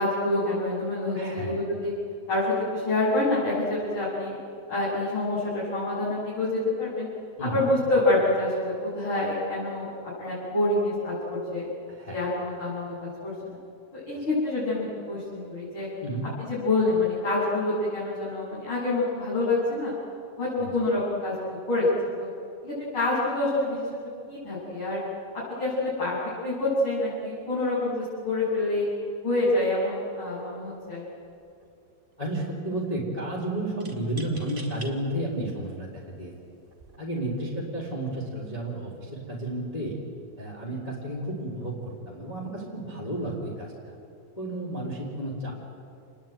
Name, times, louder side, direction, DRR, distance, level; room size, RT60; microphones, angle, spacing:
voice 1, 0.0-1.9 2.3-4.4 4.7-7.1 7.4-9.9 10.2-11.6 12.1-13.6 13.9-15.9 16.4-19.9 20.4-22.3 22.6-23.8 24.3-25.0 25.3-28.9 29.2-31.0, left 2 dB, 30° left, -10 dB, 8.3 m, -27 dB
voice 2, 1.1-1.6 7.4-7.7 11.9-12.2 14.2-14.3 16.0-16.3 20.6-20.9 32.2-36.3 37.0-40.0 40.4-43.9 44.4-45.5, right 1 dB, 10° left, -3 dB, 3.3 m, -32 dB
sound 1, 30.7-30.9 31.2-31.9 33.8-34.9 35.6-35.7 36.6-37.0, right 2 dB, 15° right, 2.3 m, -45 dB
28.0 x 20.5 x 9.2 m, 2.5 s
omnidirectional pair, 4.5 m